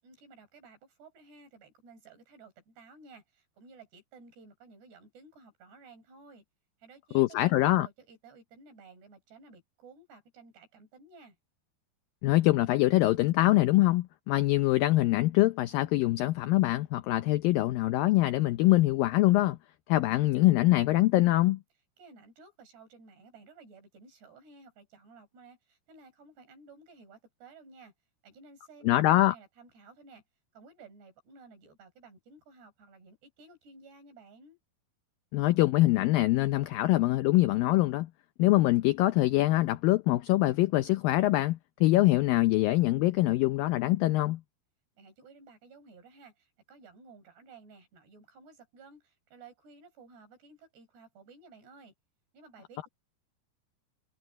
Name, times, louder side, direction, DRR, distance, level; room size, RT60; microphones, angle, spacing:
voice 1, 0.0-6.4 6.8-11.4 22.0-27.9 28.2-30.2 30.5-34.6 45.0-51.9 52.3-52.9, right 4 dB, 75° right, 7.9 m, -55 dB
voice 2, 7.1-7.9 12.2-19.6 19.9-21.6 28.8-29.3 35.3-38.1 38.4-44.4, left 17 dB, 85° left, 2.0 m, -24 dB
omnidirectional pair, 4.8 m